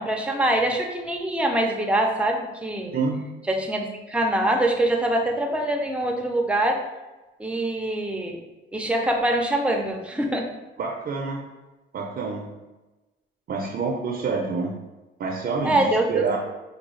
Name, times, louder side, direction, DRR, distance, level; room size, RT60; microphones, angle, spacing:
voice 1, 0.0-2.9 3.5-6.8 7.4-8.4 8.7-10.5 15.6-16.4, right 1 dB, 5° right, 2 dB, 0.6 m, -24 dB
voice 2, 10.8-11.4 11.9-12.5 13.5-14.7 15.2-16.4, right 4 dB, 50° right, 0 dB, 0.5 m, -27 dB
4.5 x 2.3 x 3.1 m, 1.1 s
cardioid pair, 90°, 20 cm